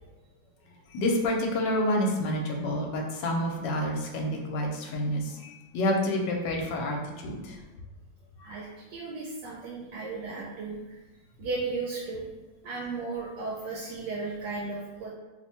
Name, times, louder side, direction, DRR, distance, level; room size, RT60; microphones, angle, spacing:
voice 1, 0.9-7.6 8.4-8.6, left 1 dB, 75° left, 1 dB, 1.2 m, -28 dB
voice 2, 8.4-11.0 11.4-12.3 12.6-15.1, right 3 dB, 75° right, -4 dB, 1.2 m, -35 dB
3.0 x 2.1 x 4.1 m, 1.2 s
omnidirectional pair, 2.0 m